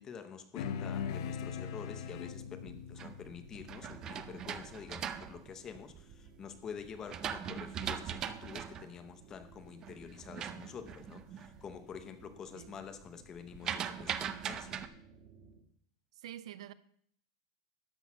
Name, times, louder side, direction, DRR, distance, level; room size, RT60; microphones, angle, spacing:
voice 1, 0.0-14.8, left 7 dB, 15° left, 0.7 m, -48 dB
sound 1, 0.5-5.3, left 7 dB, 50° left, 0.7 m, -41 dB
sound 2, 0.6-15.6, right 4 dB, 35° right, 1.6 m, -60 dB
sound 3, 2.5-6.3 6.8-11.6 11.9-12.4 12.6-14.9, right 9 dB, 20° right, 0.4 m, -40 dB
voice 2, 16.1-16.7, right 12 dB, 65° right, 0.5 m, -47 dB
12.0 x 6.2 x 6.0 m
supercardioid pair, 180°, 3 cm